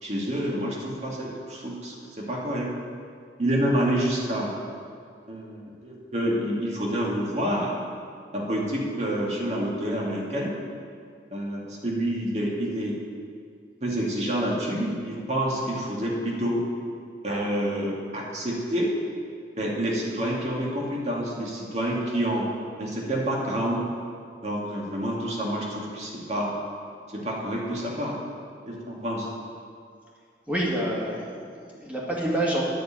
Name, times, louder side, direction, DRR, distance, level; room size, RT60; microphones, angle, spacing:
voice 1, 0.0-2.7 3.4-4.5 5.3-7.7 8.3-10.5 11.3-13.0 13.8-16.6 17.2-18.9 19.6-22.5 22.8-23.8 24.4-26.5 27.1-28.2 28.7-29.3, right 1 dB, 40° right, -4 dB, 2.3 m, -28 dB
voice 2, 30.5-32.6, right 1 dB, 10° right, -5 dB, 2.2 m, -28 dB
10.5 x 6.7 x 8.9 m, 2.2 s
head